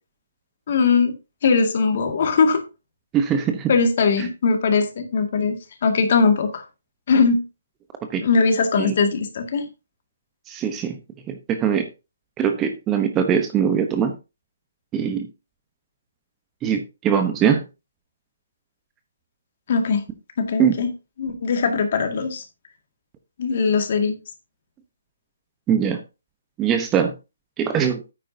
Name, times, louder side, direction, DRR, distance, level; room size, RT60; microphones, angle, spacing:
voice 1, 0.7-1.1 1.4-2.6 3.7-6.6 7.1-7.4 8.2-9.7 19.7-20.0 20.4-20.9 21.2-22.4 23.4-24.2, left 5 dB, 50° left, 5 dB, 2.1 m, -20 dB
voice 2, 3.1-3.7 8.1-8.2 8.8-8.9 10.5-11.0 11.3-11.9 12.4-14.1 14.9-15.3 16.6-17.6 20.6-20.8 25.7-26.0 26.6-27.1 27.6-28.0, right 8 dB, 15° right, 7 dB, 1.0 m, -21 dB
9.3 x 9.0 x 2.8 m, 0.27 s
hypercardioid pair, 150°, 0 cm